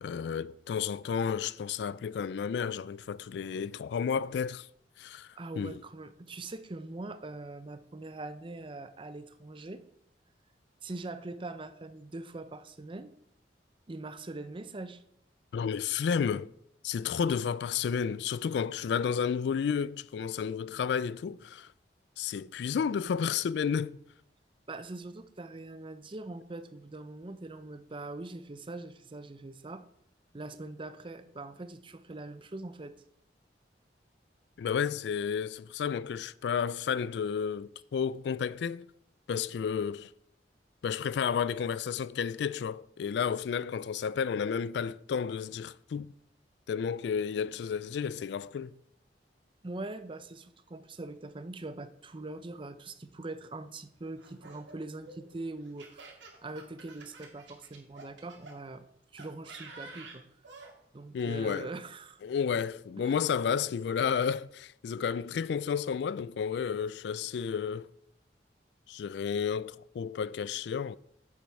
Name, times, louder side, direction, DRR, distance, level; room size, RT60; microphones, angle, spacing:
voice 1, 0.0-4.7 5.0-5.3 5.6-5.8 15.5-16.5 16.8-21.7 22.2-24.0 34.6-38.9 39.3-40.1 40.8-46.1 46.7-48.7 61.1-61.7 62.2-67.9 68.9-71.0, left 7 dB, 65° left, 0.3 m, -31 dB
voice 2, 5.4-9.8 10.8-13.1 13.9-15.0 24.7-29.8 30.3-32.9 49.6-58.9 59.1-60.2 60.9-62.2 63.0-63.2, right 2 dB, 30° right, 0.6 m, -42 dB
Laughter, 54.2-58.5 59.2-60.7, right 3 dB, 85° right, 2.2 m, -49 dB
9.3 x 7.4 x 4.7 m
head